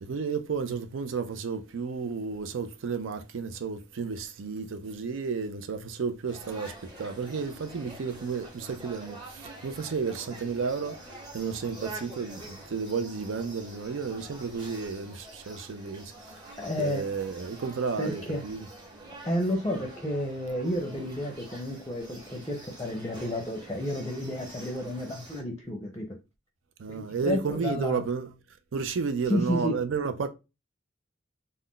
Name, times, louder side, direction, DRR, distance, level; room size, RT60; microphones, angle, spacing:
voice 1, 0.0-16.5 16.8-18.7 26.8-28.3 28.7-30.3, right 5 dB, 75° right, 0.5 m, -32 dB
sound 1, 6.3-25.4, right 1 dB, 25° right, 0.9 m, -46 dB
voice 2, 16.6-17.0 18.0-18.4 19.2-26.1 26.9-28.0 29.3-29.8, equal, 15° left, 0.5 m, -31 dB
2.4 x 2.1 x 3.7 m
head